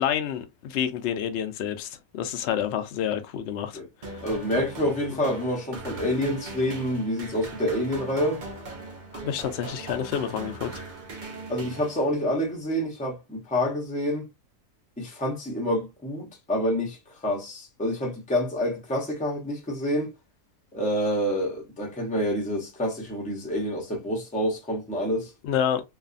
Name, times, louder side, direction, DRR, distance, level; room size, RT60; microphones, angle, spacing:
voice 1, 0.0-3.8 4.1-4.2 9.2-10.7 25.4-25.8, left 9 dB, 90° left, 0.5 m, -28 dB
sound 1, 4.0-12.4, right 2 dB, 45° right, 0.6 m, -39 dB
voice 2, 4.2-8.4 11.5-14.3 15.0-17.0 17.2-20.1 20.7-25.3, equal, 10° left, 0.5 m, -27 dB
2.6 x 2.3 x 2.4 m
omnidirectional pair, 1.7 m